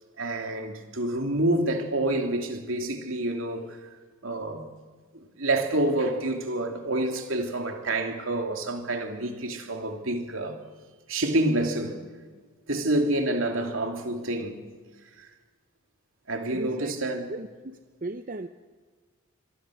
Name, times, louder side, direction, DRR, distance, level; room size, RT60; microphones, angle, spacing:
voice 1, 0.2-3.8 4.2-4.6 5.4-10.6 11.1-12.0 12.7-14.6 15.2-15.3 16.3-17.3, right 1 dB, 70° right, 2.9 m, -28 dB
voice 2, 16.5-16.9 17.3-18.5, right 2 dB, 40° right, 0.8 m, -36 dB
26.5 x 22.0 x 6.4 m
head